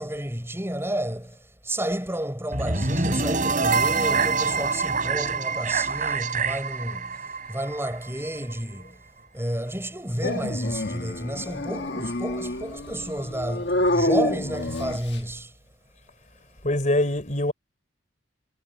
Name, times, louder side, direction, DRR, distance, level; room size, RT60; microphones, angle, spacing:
voice 1, 0.0-9.0 9.3-15.5, right 1 dB, 15° right, 5.1 m, -31 dB
sound 1, 2.5-8.6, right 4 dB, 45° right, 3.8 m, -26 dB
Dog, 10.2-15.3, left 1 dB, 60° left, 1.7 m, -28 dB
voice 2, 16.6-17.5, left 1 dB, 40° left, 4.7 m, -23 dB
head